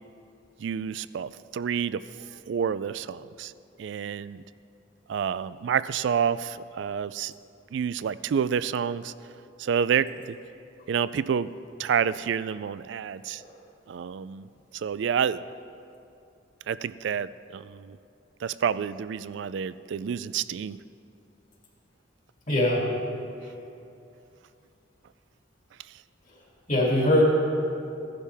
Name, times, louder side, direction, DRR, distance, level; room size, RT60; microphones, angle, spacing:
voice 1, 0.6-2.0 2.5-3.5 3.8-4.4 5.1-7.3 7.7-9.1 9.6-10.1 10.9-11.5 11.8-13.4 13.9-14.5 14.7-15.4 16.7-18.0 18.4-20.8, right 7 dB, 65° right, 16 dB, 0.3 m, -28 dB
voice 2, 22.5-22.8 26.7-27.2, left 1 dB, 40° left, -3 dB, 2.5 m, -21 dB
15.5 x 11.5 x 3.4 m, 2.6 s
head